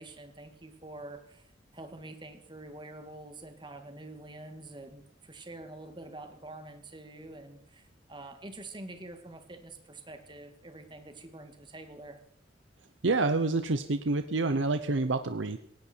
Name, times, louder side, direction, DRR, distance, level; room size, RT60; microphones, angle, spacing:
voice 1, 0.0-12.2, right 2 dB, 25° right, 7 dB, 2.0 m, -46 dB
voice 2, 13.0-15.6, right 3 dB, 85° right, 10 dB, 0.8 m, -28 dB
18.5 x 17.0 x 4.5 m, 0.71 s
head